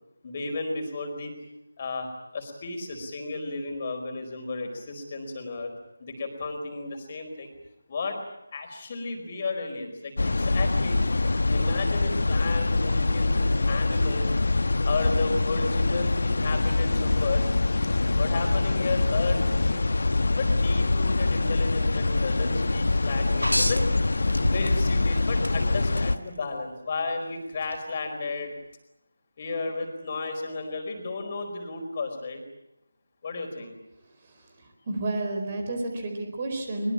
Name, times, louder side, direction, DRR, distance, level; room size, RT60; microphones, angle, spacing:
voice 1, 0.2-1.3 1.8-2.1 2.3-5.7 6.0-7.5 7.9-8.2 8.5-11.0 11.5-14.3 14.8-17.4 18.2-19.8 20.4-23.9 24.4-28.5 29.4-32.4 33.2-33.8, left 3 dB, 30° left, 5 dB, 4.8 m, -33 dB
sound 1, 10.2-26.2, left 2 dB, 50° left, 1.3 m, -24 dB
sound 2, 23.4-25.0 25.4-26.1 27.6-27.8, equal, 85° left, 1.6 m, -28 dB
voice 2, 34.9-36.9, right 2 dB, 25° right, 4 dB, 4.6 m, -30 dB
23.0 x 22.5 x 8.8 m, 0.87 s
figure-of-eight pair, 160°, 0 cm